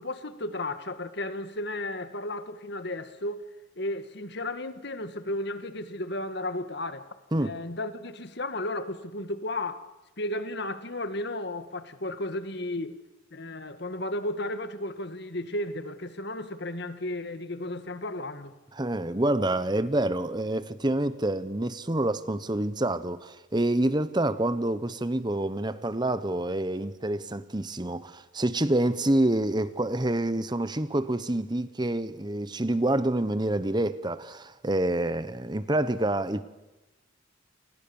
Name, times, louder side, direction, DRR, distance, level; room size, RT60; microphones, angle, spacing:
voice 1, 0.0-3.4 3.8-7.1 7.4-9.9 10.2-13.0 13.3-18.5, left 1 dB, 55° left, 1.7 m, -34 dB
voice 2, 18.7-36.4, right 1 dB, 20° right, 1.0 m, -27 dB
29.0 x 28.0 x 7.1 m
head